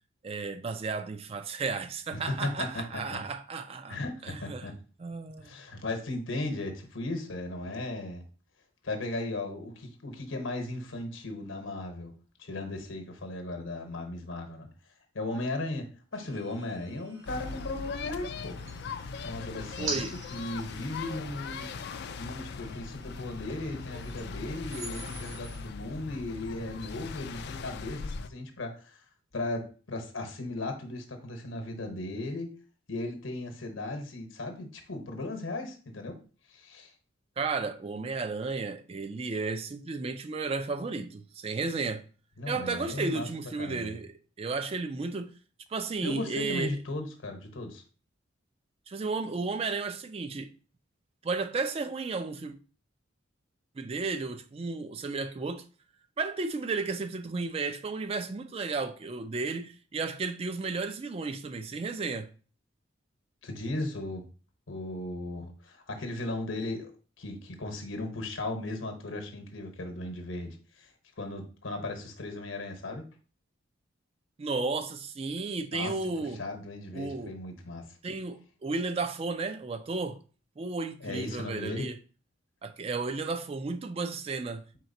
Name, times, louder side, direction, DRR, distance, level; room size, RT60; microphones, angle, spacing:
voice 1, 0.2-4.7 5.0-5.6 19.8-20.1 37.4-42.0 42.5-45.3 45.7-46.7 48.9-50.5 51.2-52.6 53.8-55.6 56.2-62.3 74.4-76.4 76.9-77.4 78.0-80.2 80.6-82.0 82.6-84.8, right 4 dB, 30° right, 0.3 m, -33 dB
voice 2, 2.1-3.2 3.9-4.8 5.4-8.2 8.8-12.1 12.4-14.7 15.1-18.6 19.2-20.0 20.3-21.7 22.2-29.0 29.3-32.5 32.9-36.2 36.5-36.9 42.4-43.3 43.6-43.9 46.0-47.8 63.4-64.3 64.7-66.9 67.2-70.9 71.2-73.0 75.7-77.9 81.0-81.9, left 2 dB, 75° left, 1.0 m, -36 dB
sound 1, 16.1-25.6, right 2 dB, 75° right, 1.5 m, -45 dB
sound 2, 17.3-28.3, left 5 dB, 55° left, 0.3 m, -40 dB
4.5 x 3.9 x 2.6 m
head